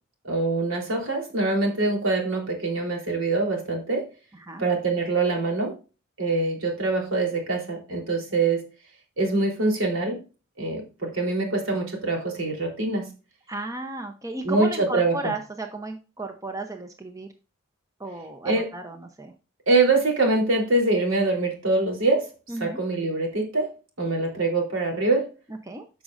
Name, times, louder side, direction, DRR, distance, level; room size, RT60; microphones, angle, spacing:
voice 1, 0.2-4.1 4.6-5.7 6.2-8.7 9.2-10.2 10.6-13.1 14.4-15.2 18.4-18.7 19.7-22.3 22.6-23.7 24.0-25.3, right 3 dB, 70° right, 0 dB, 3.7 m, -24 dB
voice 2, 13.5-17.3 18.0-19.3 22.5-22.8 25.5-25.8, right 2 dB, 15° right, 5 dB, 0.8 m, -34 dB
13.0 x 6.3 x 2.6 m, 0.32 s
head